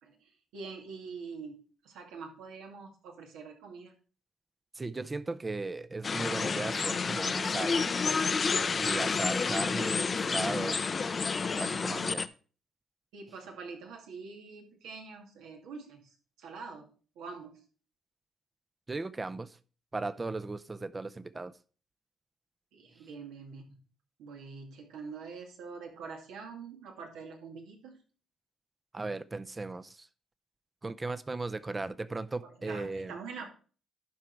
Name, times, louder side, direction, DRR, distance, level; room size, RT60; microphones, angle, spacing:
voice 1, 0.0-3.9 13.1-16.9 17.2-17.7 22.7-23.8 24.2-28.0 32.4-33.5, right 5 dB, 90° right, 2.0 m, -45 dB
voice 2, 4.7-7.8 8.8-10.8 11.6-12.3 18.9-19.6 19.9-21.6 28.9-30.1 30.8-33.1, right 3 dB, 25° right, 0.5 m, -37 dB
sound 1, 6.0-12.3, left 5 dB, 35° left, 0.5 m, -30 dB
11.5 x 4.8 x 4.5 m
cardioid pair, 90°, 0 cm